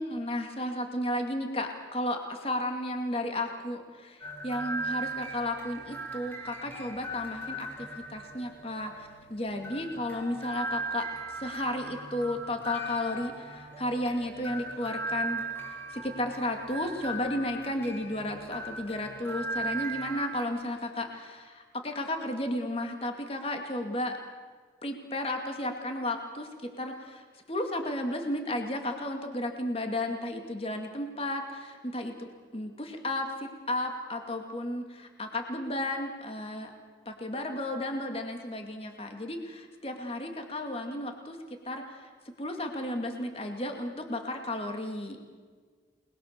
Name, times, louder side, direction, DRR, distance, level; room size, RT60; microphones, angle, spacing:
voice 1, 0.0-24.2 24.8-36.7 37.1-41.4 41.6-45.2, left 1 dB, 30° left, 4 dB, 2.4 m, -33 dB
sound 1, 4.2-20.4, right 2 dB, 10° left, 4.0 m, -38 dB
29.0 x 21.0 x 6.8 m, 1.5 s
head